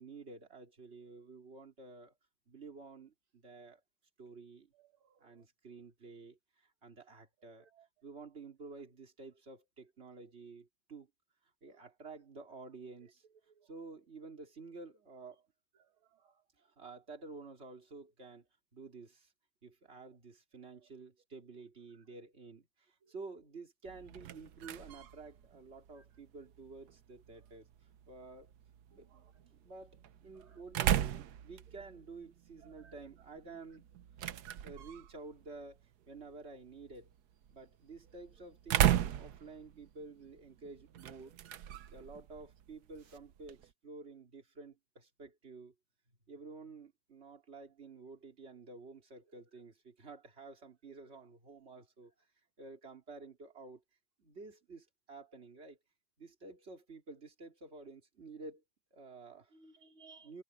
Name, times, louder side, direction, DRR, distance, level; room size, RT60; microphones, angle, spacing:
voice 1, 0.0-2.1 2.5-3.8 4.2-4.7 5.2-7.7 8.0-11.1 11.6-13.2 13.6-15.5 16.8-18.5 18.7-19.3 19.6-27.7 28.1-28.5 28.9-33.8 34.6-37.1 37.5-41.4 41.9-45.7 46.3-52.1 52.6-53.8 54.2-55.8 56.2-58.6 58.9-59.5 60.2-60.4, right 3 dB, 30° right, 3.1 m, -51 dB
voice 2, 4.8-5.3 7.7-7.9 11.7-11.9 13.6-13.7 15.8-15.9 16.2-16.3 29.1-29.3 30.4-30.6 32.6-32.9 59.5-60.3, right 4 dB, 85° right, 2.6 m, -61 dB
sound 1, 23.9-43.7, right 11 dB, 65° right, 1.2 m, -38 dB
omnidirectional pair, 2.3 m